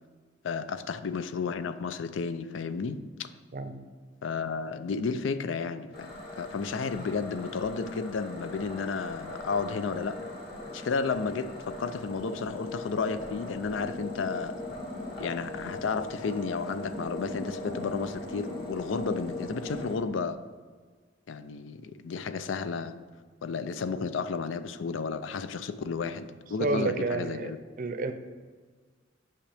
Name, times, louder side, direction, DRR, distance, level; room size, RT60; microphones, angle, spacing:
voice 1, 0.4-3.3 4.2-10.2 10.7-14.6 15.2-20.4 21.3-22.9 23.4-27.6, left 5 dB, 85° left, 12 dB, 0.4 m, -32 dB
sound 1, 5.9-19.9, left 2 dB, 55° left, 2.1 m, -40 dB
voice 2, 26.6-27.5 27.8-28.1, right 3 dB, 45° right, 9 dB, 0.5 m, -29 dB
8.7 x 5.8 x 3.4 m, 1.5 s
head